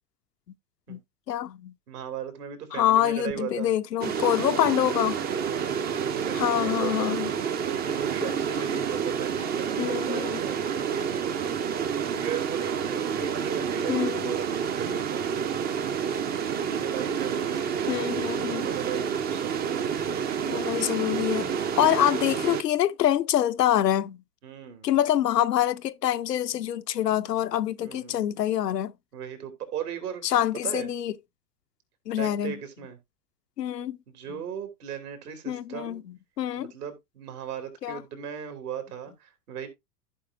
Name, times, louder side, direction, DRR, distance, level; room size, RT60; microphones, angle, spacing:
voice 1, 1.3-1.7 2.7-5.2 6.3-7.3 8.2-8.4 9.8-10.4 13.9-14.3 14.9-15.0 17.9-18.7 20.4-24.2 24.8-28.9 30.2-31.1 32.1-32.6 33.6-34.0 34.3-34.4 35.5-36.0 36.4-36.7 37.8-38.0, left 11 dB, 80° left, 0.7 m, -26 dB
voice 2, 1.9-3.7 5.3-5.7 6.0-7.1 7.7-11.6 12.1-15.2 16.5-17.9 18.5-20.1 24.4-24.9 27.8-28.2 29.1-30.9 32.2-33.0 34.1-36.0 36.6-39.7, right 8 dB, 65° right, 2.7 m, -37 dB
sound 1, 4.0-22.6, right 7 dB, 20° right, 0.6 m, -29 dB
14.5 x 4.9 x 2.6 m
figure-of-eight pair, 90°, 48 cm